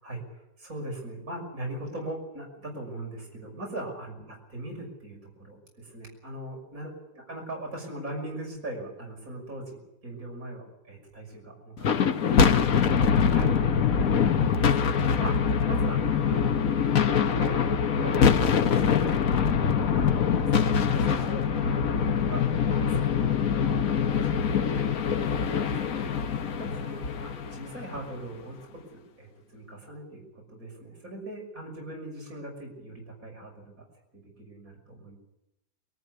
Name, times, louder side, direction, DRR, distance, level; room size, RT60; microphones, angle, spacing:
voice 1, 0.0-13.5 13.8-17.6 18.0-24.8 25.3-30.2 30.5-33.7 34.1-35.2, right 1 dB, 55° right, 0 dB, 6.6 m, -41 dB
sound 1, 11.8-28.2, left 7 dB, 60° left, 1.4 m, -24 dB
23.5 x 14.0 x 9.6 m, 0.87 s
omnidirectional pair, 1.8 m